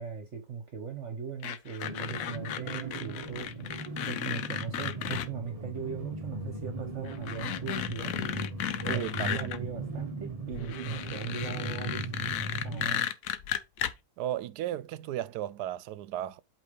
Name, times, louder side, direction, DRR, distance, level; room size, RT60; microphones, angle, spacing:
voice 1, 0.0-3.7 4.0-8.2 8.8-12.1 12.6-13.0, right 6 dB, 50° right, 1.2 m, -39 dB
sound 1, 1.4-5.3 6.5-6.6 7.0-9.6 10.5-13.9, left 10 dB, 65° left, 0.9 m, -34 dB
sound 2, 1.8-12.9, right 2 dB, 30° right, 0.7 m, -39 dB
voice 2, 8.9-9.5 14.2-16.4, right 13 dB, 80° right, 1.1 m, -34 dB
8.2 x 3.1 x 5.1 m
omnidirectional pair, 1.7 m